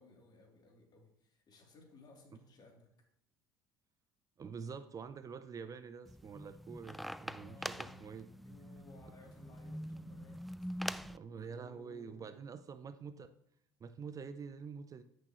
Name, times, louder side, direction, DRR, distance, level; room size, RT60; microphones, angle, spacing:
voice 1, 0.0-2.9 7.3-10.4 11.3-12.4, left 2 dB, 45° left, 0 dB, 3.1 m, -60 dB
voice 2, 4.4-8.3 10.8-13.3 13.8-15.0, right 6 dB, 35° right, 12 dB, 0.6 m, -47 dB
sound 1, 6.0-11.2, equal, ahead, 0.3 m, -44 dB
13.0 x 6.3 x 3.1 m, 0.75 s
supercardioid pair, 80°, 10 cm